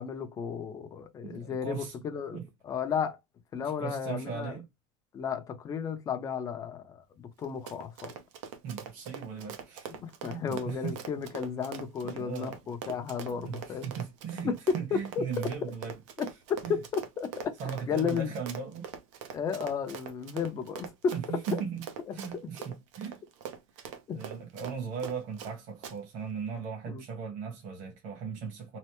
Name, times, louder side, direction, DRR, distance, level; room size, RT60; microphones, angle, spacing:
voice 1, 0.0-3.2 3.5-4.6 5.1-8.2 9.9-13.9 14.4-15.7 16.2-17.6 17.9-18.3 19.3-21.6 22.1-22.2 24.1-24.2 26.9-27.0, left 6 dB, 20° left, 0.5 m, -33 dB
voice 2, 1.2-1.9 2.3-2.4 3.8-4.7 8.6-9.9 10.3-11.0 12.0-12.6 13.3-16.0 16.6-16.7 17.6-18.9 21.1-23.2 23.7-23.9 24.1-28.8, right 6 dB, 50° right, 1.3 m, -38 dB
Run, 7.4-25.5 25.8-26.0, right 7 dB, 80° right, 0.8 m, -43 dB
3.2 x 2.0 x 2.9 m
supercardioid pair, 165°, 16 cm